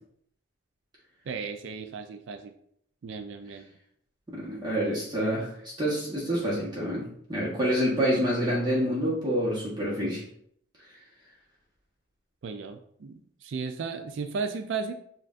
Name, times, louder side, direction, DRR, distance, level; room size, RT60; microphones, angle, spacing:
voice 1, 1.3-2.5 3.0-3.7 12.4-14.9, right 5 dB, 65° right, 7 dB, 0.3 m, -35 dB
voice 2, 4.3-10.2, equal, 20° right, -6 dB, 1.1 m, -27 dB
7.4 x 2.5 x 2.5 m, 0.68 s
head